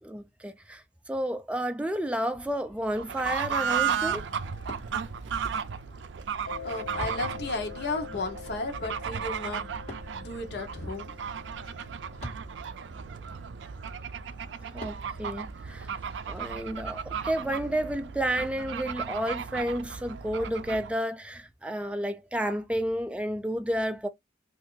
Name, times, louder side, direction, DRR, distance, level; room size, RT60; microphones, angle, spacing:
voice 1, 0.0-4.3 14.7-15.9 16.3-24.1, right 1 dB, 5° right, 0.3 m, -31 dB
Fireworks, 2.3-16.5, equal, 35° left, 1.6 m, -49 dB
Fowl / Bird, 2.9-20.9, right 7 dB, 80° right, 0.4 m, -35 dB
Mallet percussion, 6.5-12.8, left 8 dB, 85° left, 0.4 m, -46 dB
voice 2, 6.6-9.7 10.1-11.1, left 3 dB, 60° left, 0.9 m, -34 dB
2.6 x 2.4 x 3.7 m
head